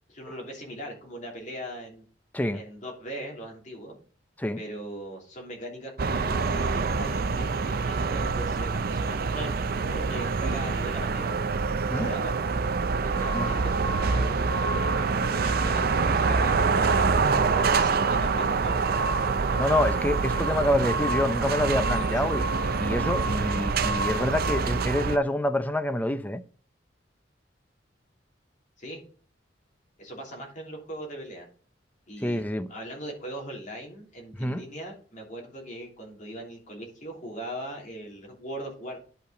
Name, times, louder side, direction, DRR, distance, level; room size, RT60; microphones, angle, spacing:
voice 1, 0.1-2.0 2.5-4.0 4.6-11.4 11.9-12.6 13.0-17.1 17.5-18.8 21.8-22.4 28.8-29.0 30.0-31.5 32.1-39.0, right 1 dB, 45° left, 3.1 m, -40 dB
sound 1, 6.0-25.2, right 4 dB, 55° right, 0.5 m, -26 dB
voice 2, 19.4-22.5 22.8-26.4 32.2-32.7 34.4-34.6, left 1 dB, 10° left, 0.5 m, -27 dB
10.0 x 5.6 x 3.8 m
head